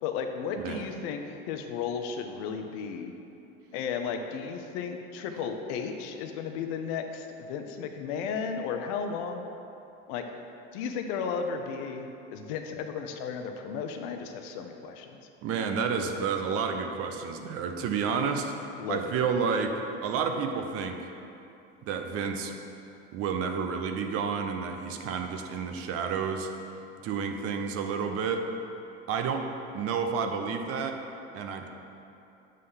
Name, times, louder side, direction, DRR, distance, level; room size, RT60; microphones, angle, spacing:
voice 1, 0.0-3.1 3.7-9.4 10.1-10.2 10.7-15.2 18.8-19.1, left 6 dB, 70° left, 5 dB, 0.6 m, -34 dB
voice 2, 15.4-18.5 18.9-21.1 21.8-22.5 23.1-26.5 27.0-28.4 29.1-29.4 29.7-31.0 31.3-31.7, right 6 dB, 50° right, 5 dB, 0.7 m, -30 dB
7.6 x 3.3 x 5.6 m, 2.8 s
supercardioid pair, 110°, 29 cm